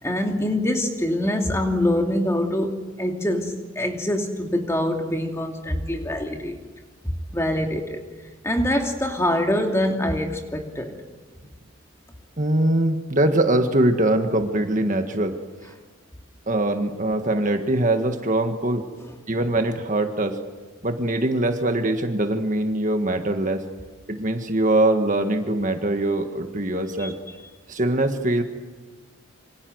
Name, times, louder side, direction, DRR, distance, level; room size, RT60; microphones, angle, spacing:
voice 1, 0.0-6.6 7.3-8.0 8.4-11.0 27.0-27.1, left 1 dB, 15° left, 3 dB, 2.7 m, -24 dB
voice 2, 12.4-15.4 16.5-18.8 19.3-20.4 20.8-23.6 24.1-27.1 27.7-28.4, right 1 dB, 35° right, 6 dB, 1.7 m, -22 dB
27.5 x 25.0 x 8.0 m, 1.3 s
head